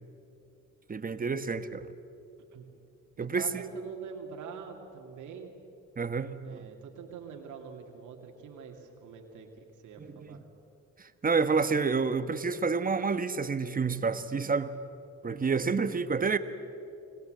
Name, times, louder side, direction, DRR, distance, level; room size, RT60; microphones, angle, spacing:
voice 1, 0.9-1.9 3.2-3.6 6.0-6.6 10.0-10.4 11.0-14.7 15.2-16.4, right 4 dB, 30° right, 11 dB, 1.3 m, -29 dB
voice 2, 3.2-5.5 6.4-10.4, right 6 dB, 80° right, 3 dB, 2.6 m, -45 dB
25.5 x 19.0 x 7.9 m, 2.7 s
cardioid pair, 90°, 30 cm